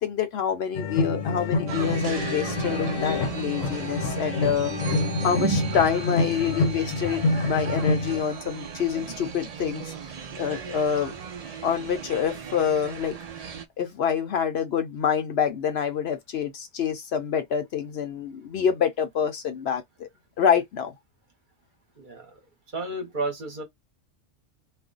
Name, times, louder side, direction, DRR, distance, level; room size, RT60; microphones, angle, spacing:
voice 1, 0.0-4.7 5.2-9.9 10.4-11.1 11.6-13.2 13.8-20.1 20.4-20.9, left 7 dB, 65° left, 0.8 m, -26 dB
sound 1, 0.7-8.2, left 3 dB, 85° left, 1.1 m, -27 dB
sound 2, 1.7-13.6, right 6 dB, 65° right, 0.3 m, -35 dB
voice 2, 22.0-22.4 22.7-23.6, right 2 dB, 45° right, 0.9 m, -32 dB
2.4 x 2.1 x 3.7 m
omnidirectional pair, 1.3 m